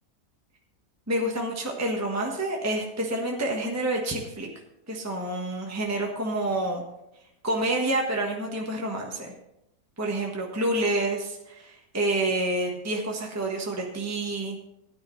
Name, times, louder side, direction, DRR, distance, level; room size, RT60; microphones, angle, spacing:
voice 1, 1.1-4.5 4.9-6.8 7.4-9.3 10.0-14.7, right 1 dB, 10° right, 0 dB, 1.2 m, -28 dB
15.5 x 10.0 x 3.2 m, 0.85 s
omnidirectional pair, 1.7 m